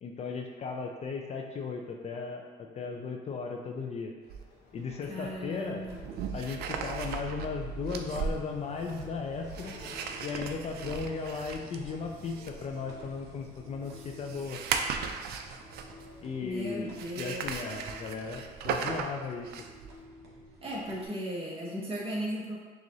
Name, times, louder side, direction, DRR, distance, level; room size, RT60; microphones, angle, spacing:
voice 1, 0.0-4.1 4.7-5.8 6.3-9.8 10.2-14.6 16.2-16.9 17.2-19.5, left 5 dB, 40° left, 2 dB, 0.4 m, -36 dB
sound 1, 4.2-19.2, left 2 dB, 70° left, 1.1 m, -56 dB
sound 2, 4.3-4.4 5.8-16.2 16.9-19.9, right 6 dB, 70° right, 0.4 m, -37 dB
voice 2, 5.1-6.0 16.4-17.5 20.6-22.5, equal, 35° right, -5 dB, 1.3 m, -36 dB
sound 3, 5.1-21.1, right 1 dB, 85° right, 1.2 m, -51 dB
6.1 x 2.5 x 2.8 m, 1.3 s
cardioid pair, 110°, 17 cm